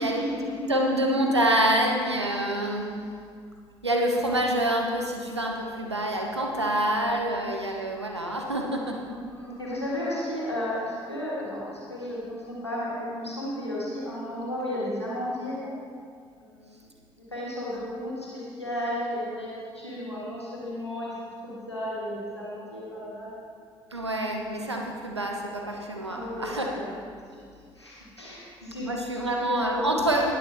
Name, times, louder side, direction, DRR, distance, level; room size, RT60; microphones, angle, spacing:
voice 1, 0.0-0.9 9.1-15.8 16.4-16.9 17.3-21.2 21.4-23.4 26.1-26.9 27.3-27.4 27.8-28.9 29.1-30.2, left 1 dB, 90° left, -7 dB, 1.8 m, -33 dB
voice 2, 0.7-2.9 3.8-9.0 23.9-26.7 28.8-30.3, right 1 dB, 90° right, 1 dB, 0.8 m, -26 dB
18.5 x 6.7 x 3.4 m, 2.2 s
figure-of-eight pair, 45°, 14 cm